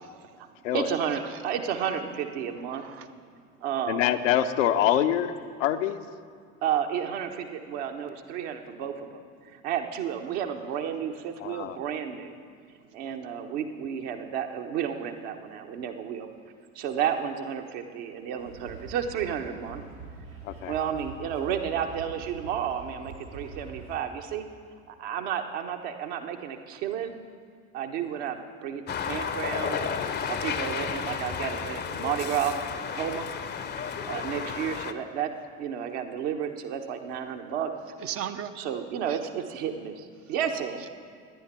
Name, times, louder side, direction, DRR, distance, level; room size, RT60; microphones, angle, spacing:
voice 1, 0.0-0.4 1.2-1.3 2.7-3.1 38.0-38.5 39.1-39.2, right 9 dB, 35° right, 9 dB, 0.6 m, -37 dB
voice 2, 0.7-2.8 3.6-4.1 6.6-12.3 12.9-16.3 16.7-19.8 20.7-24.5 24.9-27.2 27.7-29.9 30.3-33.3 34.1-35.3 35.6-37.7 38.6-40.8, right 8 dB, 55° right, 5 dB, 1.1 m, -32 dB
voice 3, 3.9-5.3 5.6-6.0 11.4-11.8 20.4-20.7, left 11 dB, 60° left, 8 dB, 0.8 m, -25 dB
sound 1, 18.4-24.0, right 3 dB, 85° right, 2.3 m, -44 dB
sound 2, 28.9-34.9, left 7 dB, 25° left, 0.7 m, -32 dB
16.5 x 10.0 x 4.3 m, 2.2 s
figure-of-eight pair, 65°, 42 cm